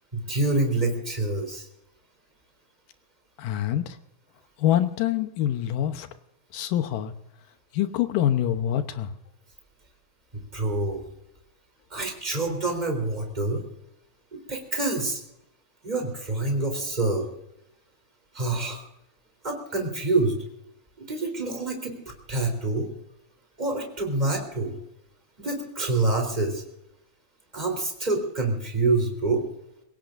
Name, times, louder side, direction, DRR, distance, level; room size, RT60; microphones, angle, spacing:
voice 1, 0.1-1.7 10.3-11.0 11.9-13.6 14.3-15.2 15.8-17.3 18.3-18.9 19.4-20.4 21.0-22.9 23.6-24.8 25.4-26.6 27.5-29.4, right 2 dB, 10° right, 2 dB, 3.1 m, -27 dB
voice 2, 3.4-4.0 4.6-6.1 6.5-7.1 7.7-9.1, left 11 dB, 75° left, 9 dB, 2.1 m, -25 dB
27.5 x 17.0 x 2.6 m, 0.81 s
omnidirectional pair, 4.9 m